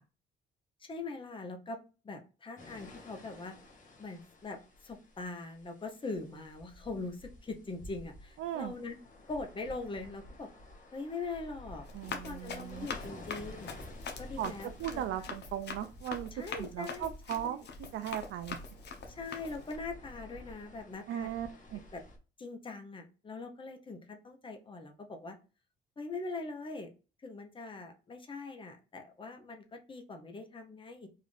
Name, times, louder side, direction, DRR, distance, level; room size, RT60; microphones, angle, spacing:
voice 1, 0.8-1.8 2.0-3.6 4.0-9.0 9.3-10.5 10.9-11.8 12.1-13.7 14.2-15.4 16.3-17.7 19.1-21.3 21.9-22.0 22.4-25.4 26.0-26.9 27.2-31.1, left 3 dB, 25° left, 5 dB, 0.8 m, -42 dB
sound 1, 2.6-22.2, left 1 dB, 40° left, 1.1 m, -51 dB
voice 2, 8.4-8.7 11.9-12.9 14.4-14.5 14.8-16.3 16.6-17.6 17.9-18.6 21.1-21.8, right 11 dB, 80° right, 8 dB, 0.4 m, -37 dB
Run, 11.8-19.8, left 5 dB, 60° left, 0.9 m, -44 dB
3.7 x 2.5 x 3.3 m, 0.32 s
cardioid pair, 90°, 20 cm